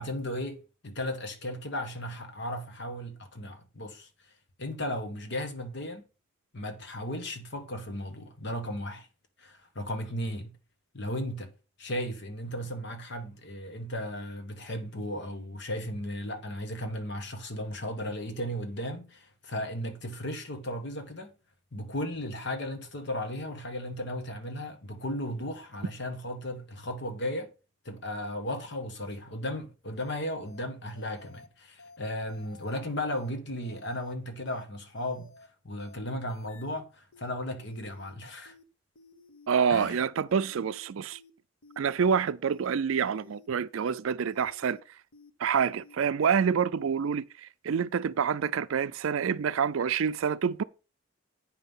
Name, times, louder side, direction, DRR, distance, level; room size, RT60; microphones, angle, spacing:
voice 1, 0.0-4.1 4.6-6.0 6.5-9.1 9.4-10.6 10.9-11.5 11.8-21.3 21.7-27.5 27.8-35.3 35.6-38.5 39.7-40.0, left 1 dB, 55° left, 1.5 m, -35 dB
sound 1, 29.9-30.1 30.4-30.6 30.9-31.5 31.8-32.0 32.3-32.8 33.1-33.3 33.6-34.1 34.4-34.6 34.9-35.5 35.8-36.0 36.3-36.8 37.1-37.3 37.6-38.1 38.4-38.6 38.9-39.5 39.8-40.0 40.3-40.8 41.1-41.3 41.6-42.1 42.4-42.6 42.9-43.5 43.8-44.0 44.3-44.8 45.1-45.3 45.6-46.0, left 3 dB, 90° left, 1.0 m, -55 dB
voice 2, 39.5-41.2 41.8-44.8 45.4-50.6, right 7 dB, 70° right, 0.4 m, -27 dB
8.9 x 5.6 x 5.6 m
head